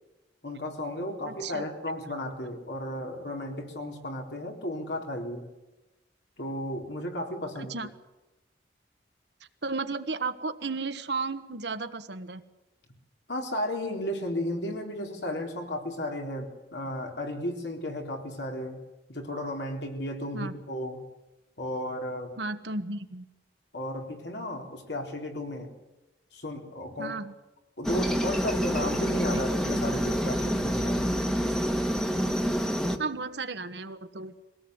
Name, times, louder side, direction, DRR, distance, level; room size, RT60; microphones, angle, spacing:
voice 1, 0.4-5.4 6.4-7.7 13.3-18.8 19.1-21.0 21.6-22.3 23.7-25.7 26.3-27.2 27.8-31.1, left 1 dB, 70° left, 2 dB, 4.0 m, -34 dB
voice 2, 1.2-1.7 7.7-7.9 9.6-12.4 20.3-20.5 22.4-23.2 27.0-27.3 29.3-29.4 33.0-34.3, right 3 dB, 70° right, 9 dB, 1.4 m, -34 dB
Aircraft, 27.8-33.0, equal, 5° left, 1.5 m, -27 dB
23.0 x 18.0 x 8.1 m, 1.0 s
head